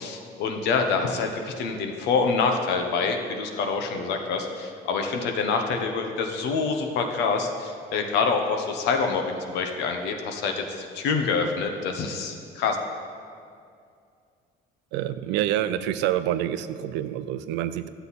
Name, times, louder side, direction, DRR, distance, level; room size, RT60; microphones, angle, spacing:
voice 1, 0.0-12.8, left 4 dB, 75° left, 4 dB, 1.1 m, -26 dB
voice 2, 14.9-17.9, right 12 dB, 85° right, 13 dB, 0.5 m, -27 dB
13.0 x 8.0 x 4.2 m, 2.3 s
cardioid pair, 165°, 18 cm